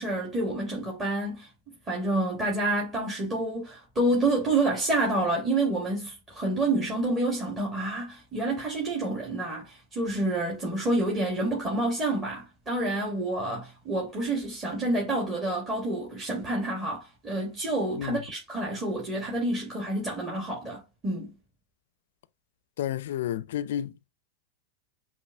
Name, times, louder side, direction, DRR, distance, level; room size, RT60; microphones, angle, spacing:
voice 1, 0.0-21.3, right 2 dB, 25° right, 1.5 m, -28 dB
voice 2, 22.8-24.1, left 11 dB, 70° left, 0.4 m, -31 dB
5.4 x 2.6 x 2.6 m
hypercardioid pair, 100°, 0 cm